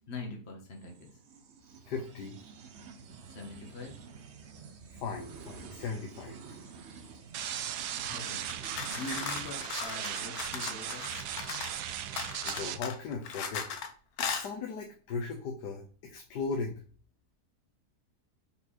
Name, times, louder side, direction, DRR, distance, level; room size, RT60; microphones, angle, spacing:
voice 1, 0.0-1.2 3.3-4.0 8.0-8.5 8.9-11.1, left 2 dB, 40° left, 2 dB, 1.6 m, -43 dB
sound 1, 0.7-10.4, right 5 dB, 55° right, 0.8 m, -50 dB
voice 2, 1.8-2.3 4.9-6.6 12.4-13.7 14.2-16.8, left 4 dB, 80° left, 1 dB, 1.5 m, -37 dB
sound 2, 7.3-12.8, right 10 dB, 75° right, 1.2 m, -37 dB
sound 3, 8.5-11.8 12.2-13.9 14.2-14.5, left 6 dB, 65° left, 1.3 m, -37 dB
5.4 x 4.5 x 4.2 m, 0.41 s
omnidirectional pair, 1.7 m